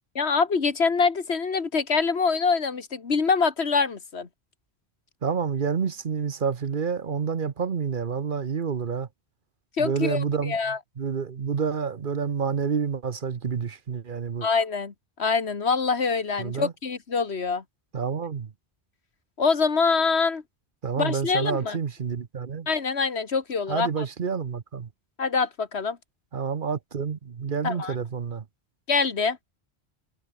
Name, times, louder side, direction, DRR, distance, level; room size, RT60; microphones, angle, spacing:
voice 1, 0.2-4.3 9.8-10.8 14.4-17.6 19.4-20.4 21.0-21.8 22.7-24.1 25.2-26.0 27.6-28.0 28.9-29.4, left 5 dB, 90° left, 2.0 m, -25 dB
voice 2, 5.2-9.1 9.8-10.6 11.0-14.5 16.4-16.7 17.9-18.5 20.8-22.7 23.7-24.9 26.3-28.4, right 6 dB, 55° right, 1.1 m, -28 dB
omnidirectional pair, 1.1 m